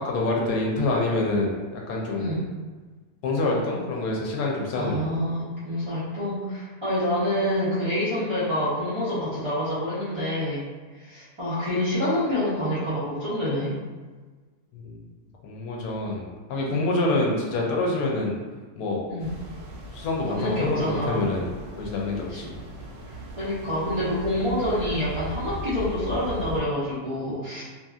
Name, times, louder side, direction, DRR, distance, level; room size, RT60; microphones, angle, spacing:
voice 1, 0.0-2.4 3.2-5.1 14.7-15.0 15.4-18.4 18.8-19.0 19.9-21.5 21.8-22.5, left 2 dB, 75° left, -1 dB, 1.1 m, -26 dB
voice 2, 4.8-10.6 11.0-13.7 16.7-17.0 19.1-19.3 20.3-21.3 22.3-22.5 23.4-27.6, left 1 dB, 35° right, -13 dB, 0.5 m, -27 dB
sound 1, 19.2-26.6, right 1 dB, 65° right, 0.9 m, -38 dB
2.9 x 2.7 x 2.3 m, 1.4 s
omnidirectional pair, 1.6 m